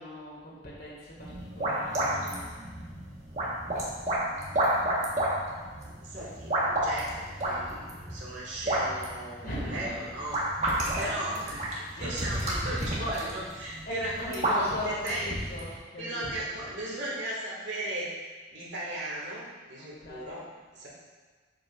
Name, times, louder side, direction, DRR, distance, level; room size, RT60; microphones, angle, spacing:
voice 1, 0.0-2.8 9.4-10.1 11.0-12.6 12.9-13.1 13.6-16.8 19.8-20.3, left 1 dB, 55° left, -5 dB, 2.0 m, -40 dB
sound 1, 1.2-15.8, right 1 dB, 35° right, 1.4 m, -31 dB
voice 2, 6.0-10.4 10.7-15.3 16.0-18.1 18.5-20.9, right 1 dB, 70° right, -6 dB, 2.1 m, -37 dB
7.5 x 7.0 x 2.5 m, 1.4 s
head